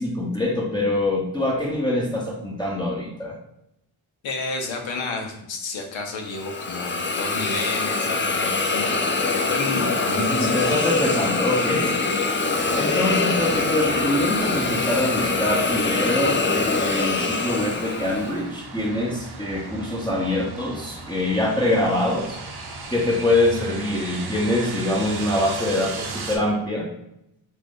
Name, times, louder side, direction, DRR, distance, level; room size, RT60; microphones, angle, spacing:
voice 1, 0.0-3.4 9.7-9.8 10.2-12.2 12.8-22.4 22.9-26.9, left 1 dB, 10° left, -4 dB, 0.9 m, -24 dB
voice 2, 4.2-9.0 9.3-10.8 11.7-11.9, left 3 dB, 70° left, 2 dB, 0.9 m, -31 dB
Hiss, 6.3-18.4, left 3 dB, 25° left, 0.5 m, -24 dB
sound 1, 12.5-26.4, right 3 dB, 55° right, 0.8 m, -37 dB
2.8 x 2.5 x 3.6 m, 0.82 s
supercardioid pair, 45°, 48 cm